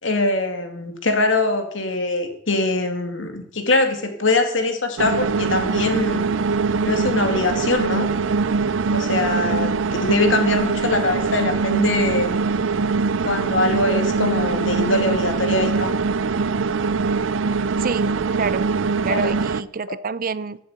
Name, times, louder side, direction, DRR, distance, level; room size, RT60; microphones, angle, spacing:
voice 1, 0.0-6.3 6.8-8.1 8.9-12.3 13.2-15.9 19.1-19.3, left 2 dB, 75° left, 5 dB, 2.2 m, -22 dB
sound 1, 5.0-19.6, right 4 dB, 90° right, 0.5 m, -22 dB
voice 2, 17.8-18.7 19.0-20.6, right 5 dB, 50° right, 16 dB, 0.6 m, -28 dB
11.5 x 7.6 x 8.1 m, 0.71 s
head